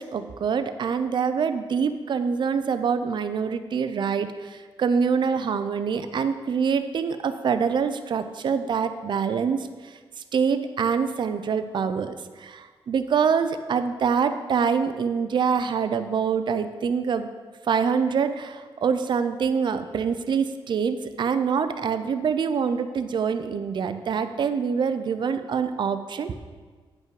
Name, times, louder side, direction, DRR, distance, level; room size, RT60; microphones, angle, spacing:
voice 1, 0.0-9.7 10.3-17.3 17.7-26.3, right 6 dB, 55° right, 10 dB, 0.5 m, -25 dB
9.1 x 5.7 x 4.7 m, 1.5 s
wide cardioid pair, 130°, 9 cm